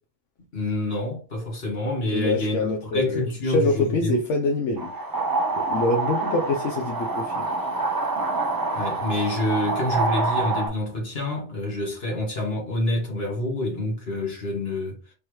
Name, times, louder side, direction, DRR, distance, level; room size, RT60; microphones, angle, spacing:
voice 1, 0.5-4.2 8.7-15.0, left 1 dB, 55° left, 1.8 m, -27 dB
voice 2, 2.1-4.9 5.6-7.5, left 2 dB, 75° left, 1.0 m, -25 dB
sound 1, 4.8-10.7, right 3 dB, 30° right, 0.4 m, -26 dB
3.6 x 2.9 x 3.1 m
omnidirectional pair, 1.3 m